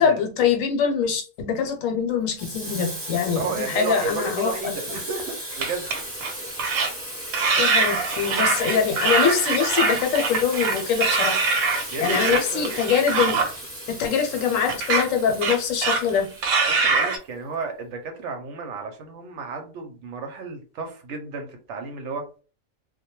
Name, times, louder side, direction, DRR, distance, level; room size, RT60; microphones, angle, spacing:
voice 1, 0.0-5.0 7.6-11.4 12.0-13.4 13.9-16.3, left 7 dB, 75° left, 4 dB, 1.0 m, -23 dB
Water tap faucet / Sink (filling or washing), 2.4-17.1, equal, 15° right, 0.6 m, -36 dB
voice 2, 3.4-5.9 6.2-6.3 11.9-12.7 16.7-22.3, right 4 dB, 65° right, 4 dB, 0.8 m, -32 dB
sound 1, 5.5-6.3 6.6-6.9 7.3-13.5 14.7-15.1 15.4-16.2 16.4-17.2, right 4 dB, 90° right, 1.1 m, -23 dB
2.2 x 2.1 x 2.9 m, 0.36 s
omnidirectional pair, 1.4 m